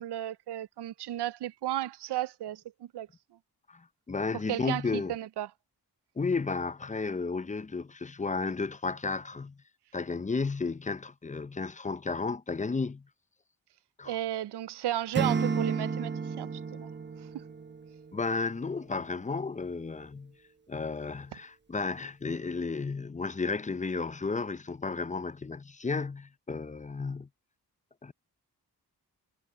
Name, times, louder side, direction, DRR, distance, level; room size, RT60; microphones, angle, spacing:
voice 1, 0.0-2.6 2.9-3.1 4.5-5.5 14.1-16.1 16.4-16.9 17.3-17.4, right 13 dB, 75° right, 0.6 m, -34 dB
voice 2, 3.7-5.1 6.2-9.6 9.9-13.1 14.0-14.2 18.1-20.3 20.7-27.3 28.0-28.1, left 4 dB, 20° left, 0.6 m, -33 dB
Acoustic guitar / Strum, 15.1-18.2, right 5 dB, 25° right, 0.9 m, -32 dB
cardioid pair, 55°, 40 cm